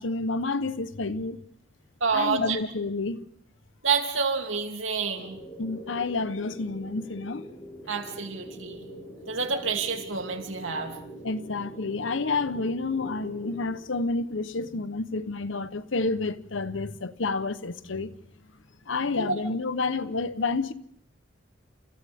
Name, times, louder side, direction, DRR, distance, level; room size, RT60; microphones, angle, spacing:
voice 1, 0.0-1.4 2.1-3.2 5.6-7.5 11.2-18.1 18.9-20.7, left 3 dB, 80° left, 1.0 m, -29 dB
voice 2, 2.0-2.6 3.8-5.4 7.9-8.8 9.3-11.0 19.2-19.4, right 5 dB, 85° right, 2.9 m, -28 dB
sound 1, 5.2-13.7, right 1 dB, 20° left, 5.1 m, -44 dB
29.5 x 28.0 x 3.6 m
head